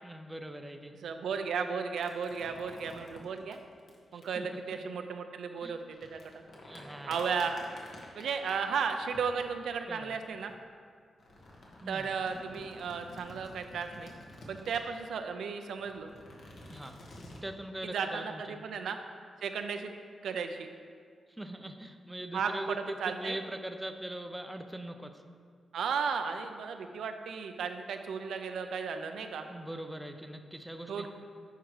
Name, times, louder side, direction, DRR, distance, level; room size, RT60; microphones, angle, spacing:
voice 1, 0.0-0.9 4.1-4.8 5.6-5.7 6.6-7.2 9.9-10.2 11.8-12.1 16.7-17.0 17.4-18.6 21.4-22.8 23.2-25.2 29.5-31.1, right 1 dB, 10° right, 6 dB, 0.5 m, -41 dB
voice 2, 1.0-3.6 4.1-5.8 6.1-6.4 7.1-7.7 8.2-10.5 11.9-14.1 14.5-16.1 17.8-19.0 19.4-19.9 20.2-20.7 22.3-23.4 25.7-29.5 30.9-31.1, right 6 dB, 90° right, 6 dB, 0.5 m, -34 dB
sound 1, 2.0-4.2 5.6-10.5 11.2-15.1 15.7-17.4, left 1 dB, 60° left, 1.4 m, -51 dB
10.0 x 4.7 x 4.8 m, 2.1 s
wide cardioid pair, 120°, 0 cm